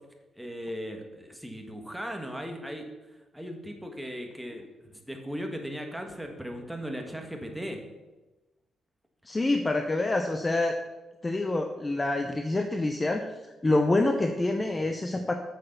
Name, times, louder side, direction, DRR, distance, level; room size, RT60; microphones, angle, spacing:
voice 1, 0.4-2.9 3.3-7.8, equal, 5° right, 3 dB, 1.4 m, -37 dB
voice 2, 9.3-10.8 11.2-13.3 13.6-15.3, left 2 dB, 20° left, 5 dB, 0.6 m, -26 dB
8.6 x 6.6 x 6.6 m, 1.1 s
cardioid pair, 135°, 0 cm